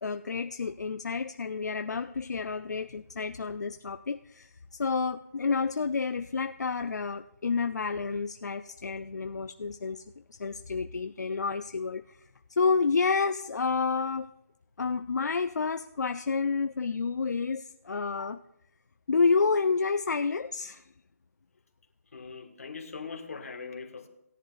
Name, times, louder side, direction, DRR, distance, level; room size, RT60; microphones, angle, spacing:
voice 1, 0.0-10.0 10.3-12.2 12.5-14.3 14.8-18.4 19.1-20.8, left 4 dB, 85° left, 9 dB, 0.5 m, -29 dB
voice 2, 22.1-24.1, left 5 dB, 60° left, 4 dB, 1.6 m, -41 dB
18.0 x 10.5 x 2.5 m, 0.80 s
hypercardioid pair, 170°, 9 cm